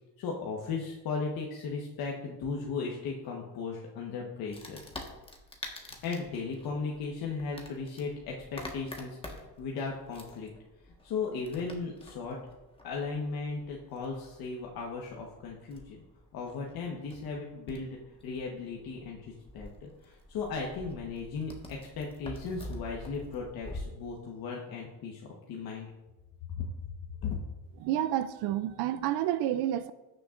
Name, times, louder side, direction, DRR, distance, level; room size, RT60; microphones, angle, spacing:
voice 1, 0.2-4.8 5.8-10.5 10.8-12.4 12.8-16.0 16.3-25.2 25.5-25.9 26.6-26.7 27.2-27.4, left 4 dB, 65° left, 1.3 m, -36 dB
Wood, 4.5-23.8, left 1 dB, 15° left, 1.4 m, -47 dB
voice 2, 27.7-29.9, right 12 dB, 70° right, 0.5 m, -29 dB
16.5 x 6.8 x 2.5 m
cardioid pair, 120°, 39 cm